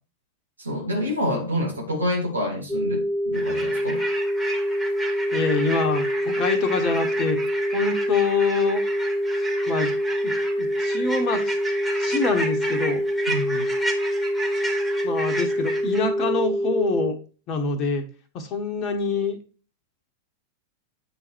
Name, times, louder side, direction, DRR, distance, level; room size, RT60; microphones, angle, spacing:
voice 1, 0.6-4.0 13.3-13.7, left 1 dB, 80° right, 2.0 m, -27 dB
sound 1, 2.7-17.1, equal, 15° right, 1.6 m, -25 dB
sound 2, 3.3-16.0, right 1 dB, 5° left, 2.0 m, -33 dB
voice 2, 5.3-7.4 7.7-8.8 9.7-9.9 10.2-10.3 10.6-11.6 12.0-13.0 15.0-17.2 17.5-18.0 18.3-19.4, left 4 dB, 35° left, 1.4 m, -25 dB
8.8 x 4.0 x 4.6 m
figure-of-eight pair, 90°, 0 cm